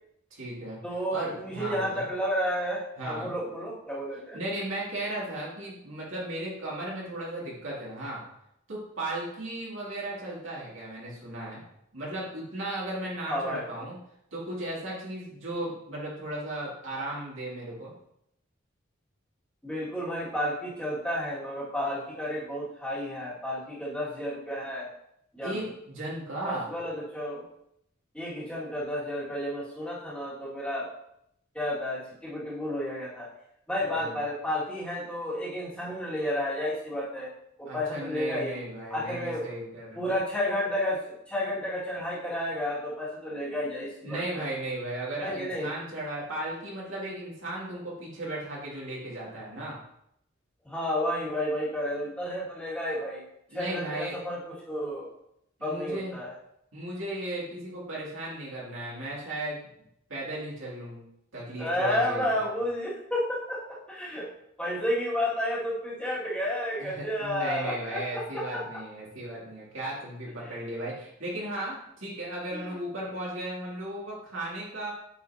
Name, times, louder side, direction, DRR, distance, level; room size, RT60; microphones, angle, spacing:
voice 1, 0.3-0.8 1.1-2.1 3.0-3.3 4.3-8.2 8.7-11.6 11.9-14.0 14.3-17.9 25.4-26.7 37.7-40.0 44.0-49.8 53.5-54.1 55.6-56.1 56.7-59.7 60.1-61.0 61.3-62.5 66.8-74.9, right 1 dB, 70° right, -6 dB, 2.6 m, -36 dB
voice 2, 0.8-4.4 13.3-13.7 19.6-24.9 25.3-25.6 26.4-27.4 28.1-30.9 31.5-33.3 33.7-37.3 37.6-38.6 38.9-39.4 40.0-44.4 45.2-45.7 50.6-53.2 53.5-55.1 55.6-56.3 61.6-64.3 64.6-68.6 70.4-70.6 72.5-72.8, left 1 dB, 5° left, -8 dB, 2.2 m, -31 dB
8.2 x 5.5 x 2.8 m, 0.77 s
head